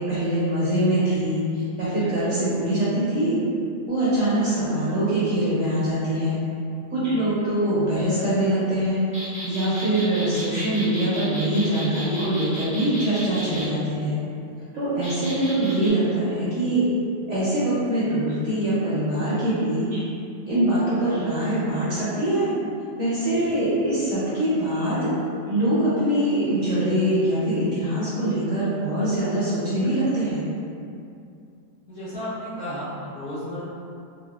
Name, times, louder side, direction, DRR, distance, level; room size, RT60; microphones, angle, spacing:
voice 1, 0.0-3.4 3.9-6.4 6.9-14.2 14.7-16.9 17.3-20.0 20.5-22.5 22.9-25.1 25.5-30.4, right 1 dB, 60° right, -11 dB, 0.8 m, -23 dB
sound 1, 9.1-13.7 15.0-15.9, right 1 dB, 10° right, 0.3 m, -35 dB
voice 2, 31.9-33.6, equal, 75° left, -15 dB, 1.4 m, -33 dB
3.5 x 2.0 x 2.3 m, 2.5 s
omnidirectional pair, 1.8 m